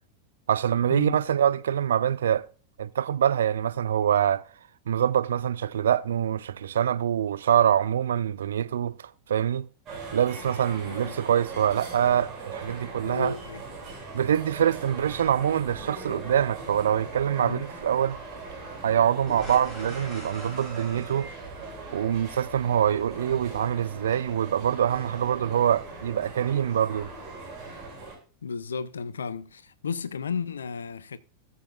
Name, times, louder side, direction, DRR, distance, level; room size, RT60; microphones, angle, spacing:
voice 1, 0.5-2.5 2.8-4.4 4.9-9.7 10.1-13.3 14.1-18.2 18.8-21.3 21.9-27.1, right 9 dB, 65° right, 0.4 m, -25 dB
sound 1, 9.9-28.2, right 3 dB, 30° right, 5.9 m, -40 dB
voice 2, 10.8-11.2 13.0-13.6 17.4-17.6 28.4-31.2, left 6 dB, 70° left, 0.6 m, -33 dB
sound 2, 13.4-23.8, equal, ahead, 4.9 m, -47 dB
17.5 x 7.0 x 2.5 m
figure-of-eight pair, 90°, 0 cm